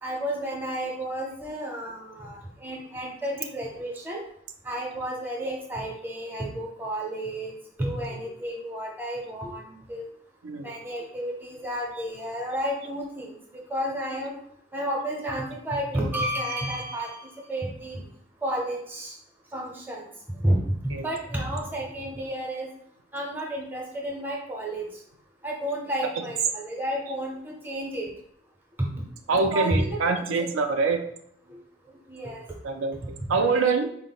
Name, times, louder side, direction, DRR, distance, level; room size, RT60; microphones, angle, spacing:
voice 1, 0.0-4.2 4.6-7.5 7.8-10.1 10.6-13.3 13.7-14.4 14.7-18.0 18.4-19.1 19.5-20.0 20.4-22.7 23.1-24.8 25.4-28.1 28.8-28.9 29.3-30.5 31.5-31.6 32.1-32.4 33.0-33.7, right 1 dB, 10° right, -1 dB, 0.6 m, -31 dB
voice 2, 29.3-31.0 32.6-33.0 33.3-33.9, right 4 dB, 70° right, 5 dB, 0.4 m, -24 dB
4.1 x 2.1 x 3.9 m, 0.68 s
head